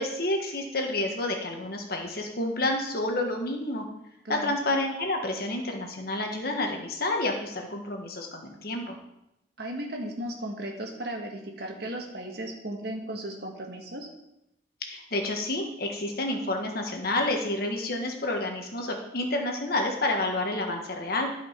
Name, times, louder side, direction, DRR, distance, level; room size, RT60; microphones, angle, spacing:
voice 1, 0.0-3.9 4.3-9.0 14.8-21.3, left 2 dB, 50° left, 3 dB, 1.4 m, -29 dB
voice 2, 4.2-4.6 9.6-14.1, right 1 dB, 55° right, 2 dB, 1.6 m, -36 dB
12.0 x 5.1 x 5.1 m, 0.86 s
head